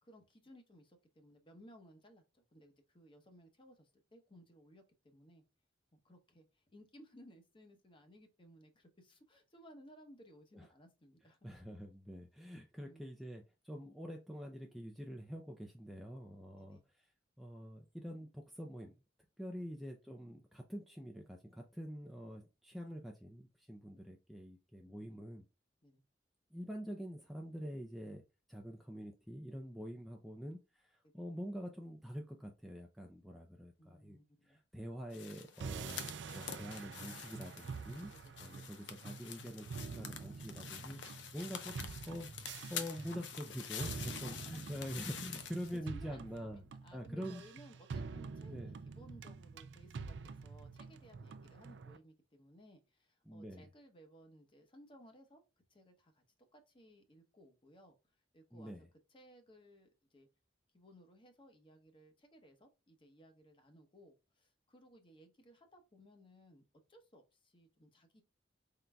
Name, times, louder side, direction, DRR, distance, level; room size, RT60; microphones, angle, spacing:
voice 1, 0.0-5.4 5.9-11.4 12.8-13.0 16.5-16.8 25.0-25.2 25.8-26.0 31.1-31.3 33.8-34.6 37.9-38.5 44.0-44.6 45.7-55.4 55.7-56.2 56.5-58.8 59.1-60.3 60.7-66.6 66.9-68.2, equal, 30° left, 0.9 m, -60 dB
voice 2, 11.4-17.1 17.4-18.9 19.4-25.4 26.5-28.2 28.5-34.2 34.4-36.1 36.3-38.1 38.4-46.6 46.9-47.4 48.5-48.8 53.3-53.7 58.5-58.9, equal, ahead, 0.4 m, -46 dB
sound 1, 35.1-45.8, left 8 dB, 85° left, 0.7 m, -47 dB
sound 2, 35.6-52.0, right 5 dB, 70° right, 0.4 m, -47 dB
4.4 x 3.8 x 2.2 m
head